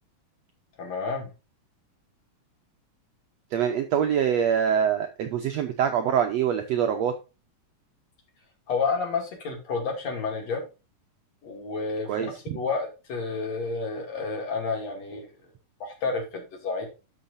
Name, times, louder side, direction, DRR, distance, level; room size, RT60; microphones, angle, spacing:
voice 1, 0.8-1.3 8.7-10.6 11.4-15.3 15.8-16.9, left 4 dB, 55° left, 2 dB, 3.4 m, -30 dB
voice 2, 3.5-7.1 12.1-12.6, right 8 dB, 75° right, 6 dB, 1.6 m, -24 dB
12.0 x 5.6 x 2.6 m, 0.30 s
omnidirectional pair, 3.8 m